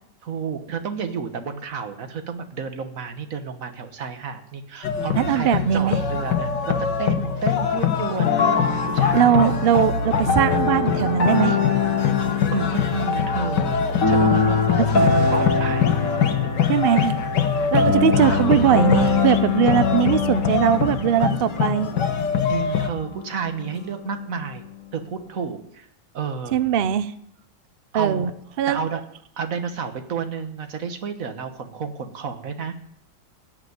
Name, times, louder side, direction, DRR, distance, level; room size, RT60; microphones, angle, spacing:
voice 1, 0.2-9.7 12.5-16.8 18.0-18.2 22.5-24.6 24.9-25.9 26.1-26.6 27.9-28.3 28.7-29.0 29.4-32.7, right 5 dB, 55° right, 8 dB, 1.6 m, -31 dB
sound 1, 4.8-22.9, left 6 dB, 80° left, 1.8 m, -24 dB
voice 2, 5.1-6.0 9.1-11.6 14.8-14.9 16.7-17.2 17.7-21.9 26.5-27.1 27.9-28.3 28.6-28.8, right 9 dB, 80° right, 13 dB, 0.5 m, -20 dB
sound 2, 8.2-24.4, left 5 dB, 55° left, 2.0 m, -24 dB
17.0 x 5.8 x 9.5 m, 0.72 s
omnidirectional pair, 1.9 m